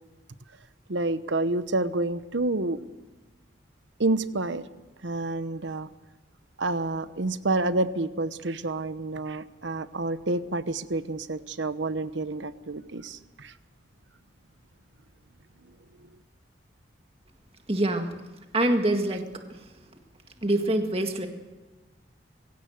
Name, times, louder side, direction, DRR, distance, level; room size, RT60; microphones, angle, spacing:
voice 1, 0.9-2.8 4.0-4.6 5.0-5.9 6.6-13.5, right 2 dB, 75° right, 13 dB, 1.0 m, -29 dB
voice 2, 17.7-18.2 18.5-19.6 20.4-21.3, right 1 dB, 30° right, 5 dB, 1.8 m, -25 dB
23.0 x 16.5 x 8.0 m, 1.2 s
head